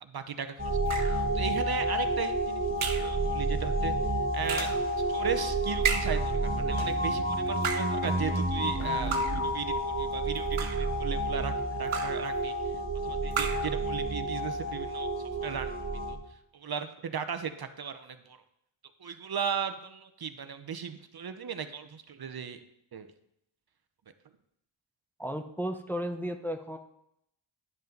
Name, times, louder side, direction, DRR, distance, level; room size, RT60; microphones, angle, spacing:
voice 1, 0.0-2.7 2.9-3.9 4.3-4.7 5.1-12.5 13.0-15.1 15.4-15.7 16.1-16.2 16.5-18.4 19.0-22.6 22.9-23.1, right 7 dB, 50° right, 9 dB, 0.8 m, -36 dB
sound 1, 0.6-16.2, right 1 dB, 25° right, 1.7 m, -30 dB
sound 2, 0.9-1.3 2.8-3.2 4.5-4.8 5.8-6.3 7.5-8.0 9.1-9.5 10.4-11.0 11.9-12.3 13.3-13.8, right 6 dB, 80° right, 1.0 m, -33 dB
sound 3, 4.6-5.4 6.8-7.4 8.0-9.2, left 4 dB, 70° left, 1.3 m, -45 dB
voice 2, 25.2-26.8, equal, 5° left, 5 dB, 0.7 m, -34 dB
11.0 x 5.5 x 3.9 m, 0.76 s
cardioid pair, 65°, 48 cm